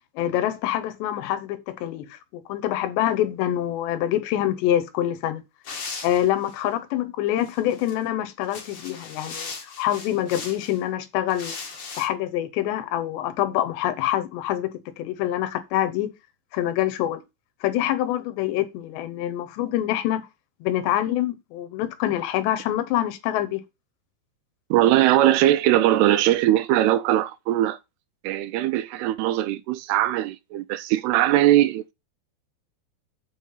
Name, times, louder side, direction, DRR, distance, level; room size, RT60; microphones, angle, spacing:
voice 1, 0.2-5.4 6.0-11.6 12.0-16.1 16.5-17.2 17.6-20.2 20.6-23.6, left 12 dB, 90° left, 3.2 m, -25 dB
sound 1, 5.6-6.6 7.4-7.9 8.4-10.8 11.3-12.1, left 4 dB, 45° left, 2.0 m, -38 dB
voice 2, 24.7-27.8 28.2-31.9, right 13 dB, 80° right, 2.5 m, -20 dB
7.3 x 5.7 x 5.4 m
omnidirectional pair, 4.9 m